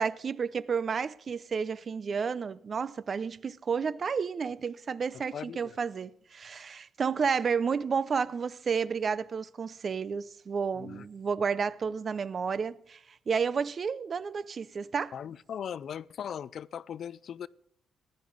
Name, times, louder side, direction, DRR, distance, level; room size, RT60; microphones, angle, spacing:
voice 1, 0.0-13.0 13.3-15.1, right 6 dB, 45° right, 0.4 m, -31 dB
voice 2, 5.1-5.8 10.8-11.1 15.1-17.5, left 8 dB, 60° left, 0.3 m, -39 dB
15.5 x 10.5 x 3.9 m
cardioid pair, 90°, 0 cm